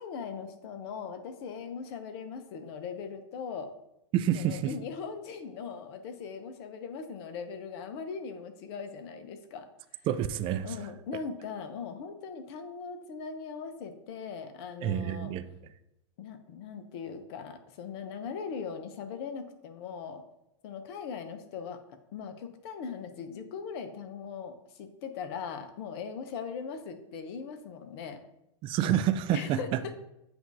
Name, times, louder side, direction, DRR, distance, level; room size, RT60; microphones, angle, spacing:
voice 1, 0.0-3.7 4.3-9.7 10.6-15.3 16.2-20.2 20.6-21.8 22.1-28.2 29.3-29.9, left 6 dB, 50° left, 8 dB, 0.9 m, -40 dB
voice 2, 4.1-4.7 10.1-10.7 14.8-15.4 28.6-29.8, right 10 dB, 35° right, 12 dB, 0.4 m, -28 dB
7.9 x 2.6 x 4.7 m, 0.86 s
hypercardioid pair, 110°, 16 cm